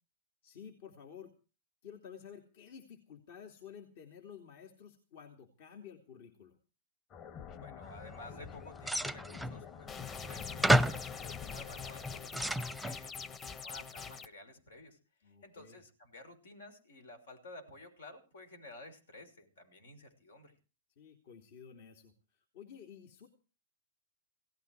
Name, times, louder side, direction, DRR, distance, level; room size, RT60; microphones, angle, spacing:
voice 1, 0.4-1.3 1.8-6.5 15.2-15.8 21.0-23.3, left 7 dB, 60° left, 4 dB, 3.0 m, -52 dB
sound 1, 7.1-12.2, left 7 dB, 40° left, 2.5 m, -48 dB
voice 2, 7.6-20.5, left 2 dB, 85° left, 8 dB, 6.0 m, -53 dB
sound 2, 8.8-9.6 10.3-10.4 10.6-11.1 11.8-13.0, right 1 dB, ahead, 0.7 m, -30 dB
sound 3, 9.9-14.3, left 6 dB, 25° left, 1.2 m, -44 dB
17.5 x 15.0 x 4.8 m, 0.35 s
hypercardioid pair, 115°, 0 cm